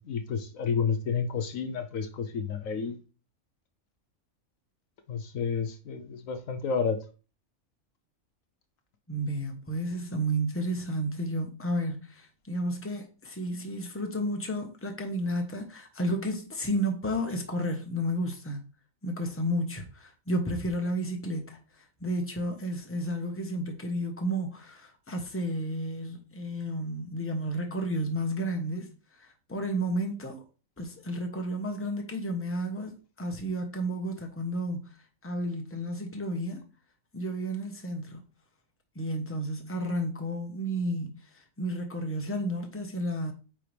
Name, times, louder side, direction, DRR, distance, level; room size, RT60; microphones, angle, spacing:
voice 1, 0.1-2.9 5.1-7.0, left 6 dB, 75° left, 1.2 m, -30 dB
voice 2, 9.1-18.6 19.0-30.4 30.8-35.0 35.2-36.6 37.1-38.2 38.9-43.3, equal, 10° left, 1.1 m, -32 dB
8.7 x 4.5 x 3.4 m
omnidirectional pair, 1.4 m